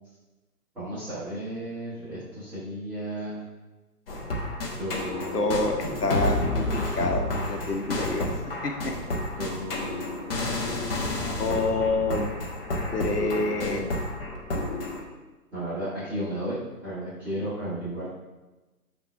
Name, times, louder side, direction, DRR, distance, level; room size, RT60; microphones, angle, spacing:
voice 1, 0.7-3.4 4.8-5.5 9.4-10.5 11.6-11.7 13.2-13.8 15.5-18.1, right 1 dB, 5° right, -17 dB, 1.9 m, -34 dB
sound 1, 4.1-15.0, left 1 dB, 40° left, 1.2 m, -30 dB
voice 2, 5.3-8.3 8.6-8.9 11.4-12.3 12.9-13.8, left 3 dB, 80° left, 4 dB, 1.2 m, -27 dB
5.7 x 3.4 x 5.8 m, 1.1 s
figure-of-eight pair, 150°, 47 cm